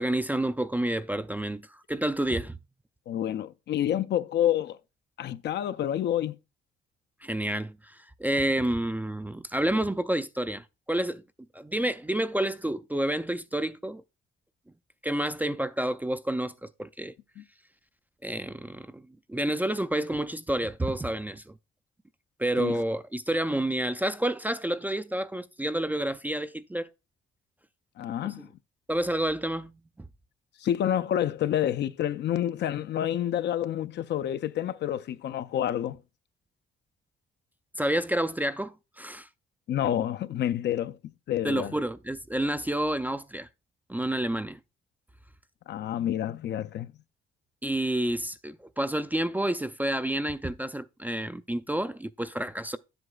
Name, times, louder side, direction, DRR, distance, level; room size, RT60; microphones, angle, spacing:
voice 1, 0.0-2.6 7.2-11.2 11.5-14.0 15.0-17.1 18.2-21.6 22.4-26.9 28.2-28.3 28.9-29.8 37.8-39.3 41.4-43.5 43.9-44.6 47.6-52.8, right 1 dB, 10° right, 0.3 m, -29 dB
voice 2, 3.1-4.8 5.2-6.4 17.4-17.5 22.6-22.7 28.0-28.5 30.6-36.0 39.7-41.0 41.3-41.7 45.7-46.9, left 11 dB, 60° left, 0.5 m, -28 dB
9.9 x 7.8 x 2.3 m
cardioid pair, 90°, 20 cm